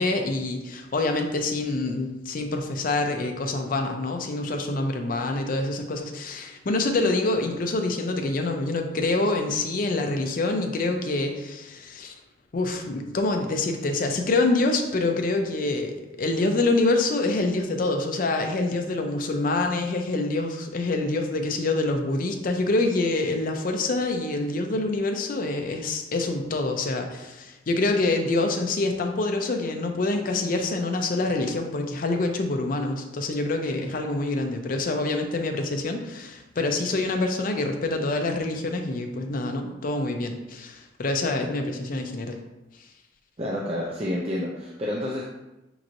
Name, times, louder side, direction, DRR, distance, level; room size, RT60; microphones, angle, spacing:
voice 1, 0.0-12.1 12.5-42.4, left 2 dB, 50° left, 4 dB, 0.5 m, -26 dB
voice 2, 43.4-45.2, left 1 dB, 30° right, -3 dB, 0.4 m, -29 dB
6.1 x 2.9 x 2.6 m, 1.0 s
head